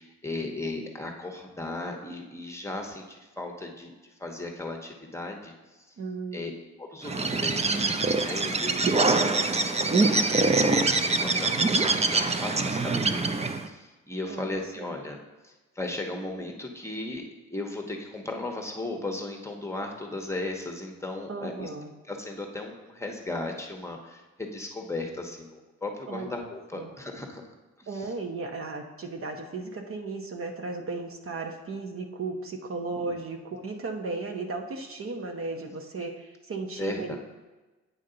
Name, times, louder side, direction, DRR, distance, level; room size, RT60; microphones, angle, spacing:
voice 1, 0.0-3.9 4.2-5.8 6.3-6.5 6.8-15.2 15.4-21.7 22.1-27.4 27.8-28.0 32.9-33.0 36.8-37.2, left 2 dB, 10° left, 1 dB, 1.1 m, -36 dB
voice 2, 6.0-6.4 14.3-14.9 21.3-21.9 26.1-26.3 26.7-26.9 27.9-37.2, right 3 dB, 45° right, 3 dB, 1.0 m, -35 dB
Bird, 7.0-13.7, right 3 dB, 20° right, 0.6 m, -24 dB
9.0 x 5.2 x 3.9 m, 1.2 s
cardioid pair, 90°, 30 cm